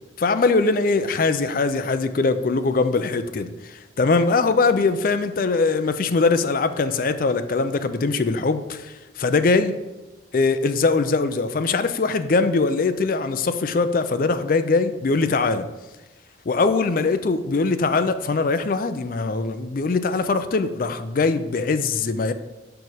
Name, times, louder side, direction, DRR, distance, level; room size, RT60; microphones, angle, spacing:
voice 1, 0.2-9.8 10.3-15.7 16.5-22.3, left 3 dB, 45° left, 11 dB, 0.4 m, -22 dB
5.3 x 4.6 x 6.3 m, 1.1 s
head